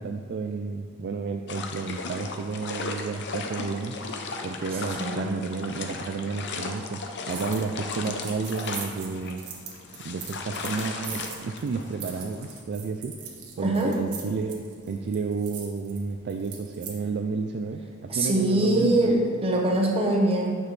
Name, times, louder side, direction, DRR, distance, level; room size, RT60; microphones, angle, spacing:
voice 1, 0.0-4.0 4.4-7.0 7.3-9.4 10.0-13.2 13.6-19.1, right 4 dB, 50° right, 4 dB, 0.3 m, -31 dB
sound 1, 1.5-12.6, left 3 dB, 50° left, 0.7 m, -36 dB
voice 2, 5.0-5.4 13.6-13.9 18.1-20.5, right 1 dB, 25° right, 0 dB, 1.0 m, -23 dB
sound 2, 7.3-7.6 7.9-17.0, right 7 dB, 85° right, 1.2 m, -41 dB
9.5 x 6.1 x 3.2 m, 2.2 s
head